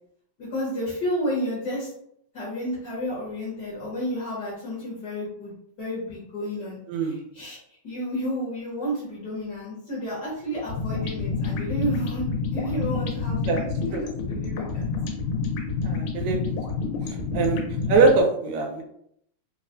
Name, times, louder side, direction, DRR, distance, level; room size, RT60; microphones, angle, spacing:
voice 1, 0.4-1.9 2.3-7.6 7.8-14.9, equal, 60° left, -7 dB, 1.1 m, -31 dB
sound 1, 10.6-18.2, left 4 dB, 90° left, 2.1 m, -28 dB
voice 2, 15.8-16.4 17.1-17.6 17.9-18.8, right 4 dB, 80° right, 2 dB, 1.9 m, -22 dB
4.6 x 2.0 x 2.5 m, 0.70 s
omnidirectional pair, 3.3 m